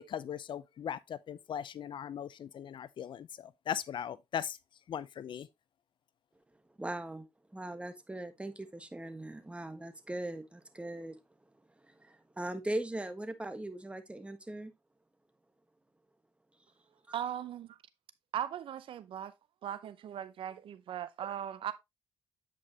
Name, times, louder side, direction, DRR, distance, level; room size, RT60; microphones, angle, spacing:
voice 1, 0.0-4.6 4.9-5.5, left 9 dB, 55° left, 0.5 m, -39 dB
voice 2, 6.8-7.3 7.5-11.2 11.8-14.7, right 1 dB, 10° right, 1.4 m, -40 dB
voice 3, 17.1-17.8 18.3-19.3 19.6-21.7, right 10 dB, 65° right, 0.6 m, -38 dB
8.5 x 5.2 x 2.9 m
supercardioid pair, 70°, 10 cm